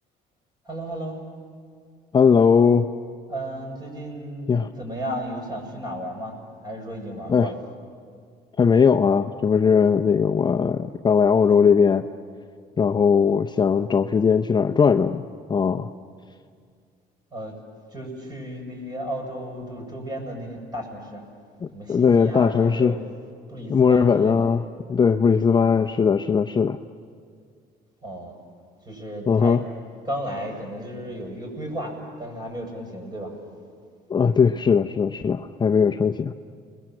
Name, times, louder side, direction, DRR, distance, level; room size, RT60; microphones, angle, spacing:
voice 1, 0.7-1.2 3.3-4.5 4.8-6.4 6.6-7.6 17.3-17.6 17.9-21.2 21.7-23.1 23.5-24.4 28.0-28.4 28.8-29.6 30.1-33.4, equal, 25° right, 1 dB, 7.2 m, -34 dB
voice 2, 2.1-2.9 4.5-4.7 7.3-7.5 8.6-12.1 12.8-15.2 15.5-15.9 21.6-23.0 23.7-26.8 29.3-29.6 34.1-36.3, left 6 dB, 25° left, 7 dB, 0.6 m, -19 dB
30.0 x 21.5 x 7.7 m, 2.1 s
cardioid pair, 110°, 17 cm